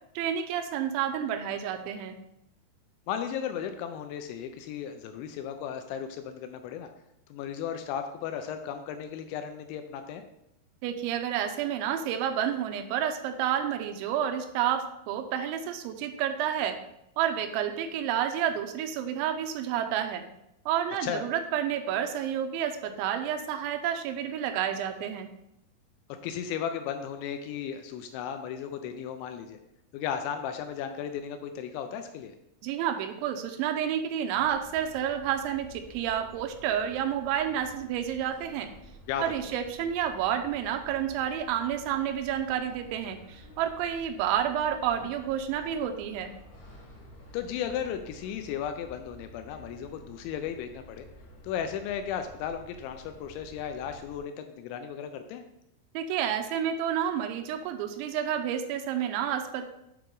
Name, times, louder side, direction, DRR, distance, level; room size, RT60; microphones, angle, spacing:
voice 1, 0.2-2.2 10.8-16.8 17.2-20.3 20.7-25.3 32.6-38.7 39.2-46.4 55.9-59.6, right 9 dB, 85° right, 6 dB, 2.9 m, -30 dB
voice 2, 3.1-6.9 7.3-10.2 21.0-21.2 26.2-29.6 29.9-32.3 39.1-39.6 45.0-45.1 47.3-51.0 51.4-55.4, left 8 dB, 85° left, 7 dB, 2.8 m, -35 dB
sound 1, 34.3-54.2, equal, 65° left, 1.9 m, -51 dB
8.0 x 4.8 x 3.8 m, 0.82 s
omnidirectional pair, 5.4 m